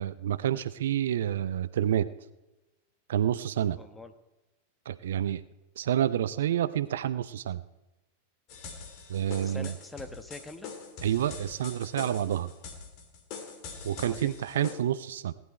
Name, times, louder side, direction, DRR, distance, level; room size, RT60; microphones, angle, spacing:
voice 1, 0.0-2.1 3.1-3.8 4.9-5.4 5.8-7.6 9.1-9.7 11.0-12.5 13.8-15.3, right 10 dB, 60° right, 16 dB, 0.5 m, -28 dB
voice 2, 3.8-4.1 9.4-10.7 13.9-14.4, left 2 dB, 5° left, 8 dB, 1.3 m, -44 dB
sound 1, 8.5-14.7, left 5 dB, 40° left, 2.6 m, -44 dB
18.0 x 11.0 x 4.4 m, 1.0 s
figure-of-eight pair, 90°, 0 cm